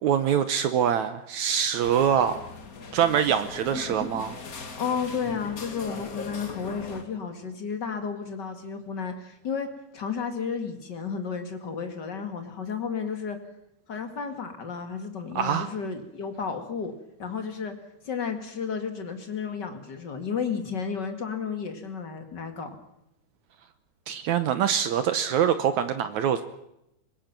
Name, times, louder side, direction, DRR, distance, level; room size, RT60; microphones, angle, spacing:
voice 1, 0.0-2.4 2.9-4.4 15.3-15.7 24.1-26.4, right 8 dB, 75° right, 11 dB, 1.7 m, -24 dB
sound 1, 1.8-7.0, left 4 dB, 90° left, 0.7 m, -39 dB
voice 2, 4.8-9.7 9.9-13.4 13.9-16.9 17.2-17.7 18.0-22.8, left 6 dB, 35° left, 6 dB, 1.9 m, -32 dB
24.5 x 20.5 x 6.0 m, 0.84 s
omnidirectional pair, 4.4 m